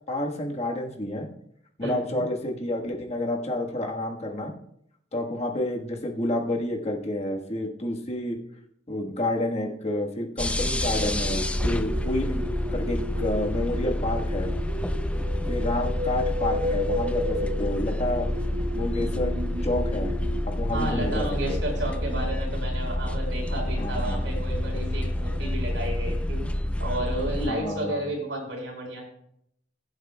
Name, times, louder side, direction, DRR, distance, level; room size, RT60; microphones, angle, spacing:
voice 1, 0.1-1.3 1.8-4.5 5.1-8.4 8.9-14.5 15.5-18.3 18.8-19.3 19.6-20.1 20.6-21.2 23.8-24.2 27.4-28.0, left 1 dB, 35° left, 1 dB, 1.4 m, -29 dB
voice 2, 1.8-2.2 20.7-26.4 26.8-29.0, right 1 dB, 85° right, -1 dB, 4.2 m, -32 dB
sound 1, 10.4-27.5, left 1 dB, 5° left, 0.4 m, -28 dB
sound 2, 11.2-22.3, left 1 dB, 40° right, 1.0 m, -34 dB
20.5 x 7.8 x 2.2 m, 0.72 s
head